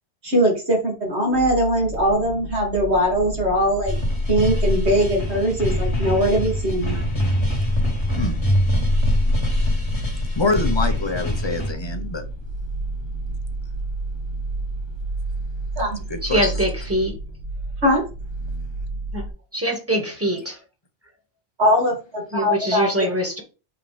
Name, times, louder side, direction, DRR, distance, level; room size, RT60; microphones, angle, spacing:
voice 1, 0.2-3.9 4.3-6.9 15.8-15.9 17.8-18.0 21.6-23.1, equal, 70° right, -2 dB, 3.0 m, -21 dB
sound 1, 1.3-19.3, right 2 dB, 85° right, 4.8 m, -32 dB
sound 2, 3.9-11.7, left 1 dB, 70° left, 2.3 m, -23 dB
voice 2, 10.3-12.2 16.1-16.6, left 3 dB, 25° left, 6 dB, 1.0 m, -25 dB
voice 3, 16.2-17.1 19.1-19.3 19.5-20.6 22.3-23.4, right 1 dB, 10° right, 2 dB, 1.8 m, -23 dB
8.2 x 4.7 x 3.4 m, 0.33 s
omnidirectional pair, 1.2 m